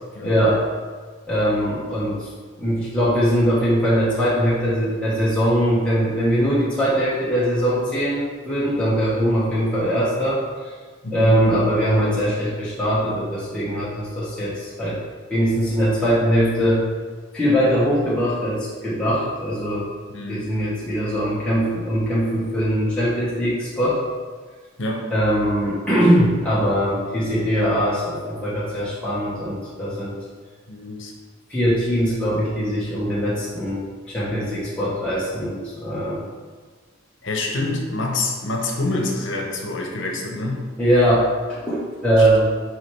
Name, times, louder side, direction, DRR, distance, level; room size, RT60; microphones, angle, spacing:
voice 1, 0.2-0.6 1.3-2.3 2.6-10.7 11.1-15.0 15.3-16.8 17.3-19.9 20.3-24.0 25.1-30.2 31.5-36.2 40.8-42.4, equal, 5° left, -10 dB, 1.3 m, -21 dB
voice 2, 11.0-11.4 20.1-20.6 24.8-25.1 30.7-31.1 37.2-40.7 42.2-42.4, left 2 dB, 65° left, 1 dB, 1.0 m, -27 dB
5.0 x 4.7 x 4.7 m, 1.5 s
head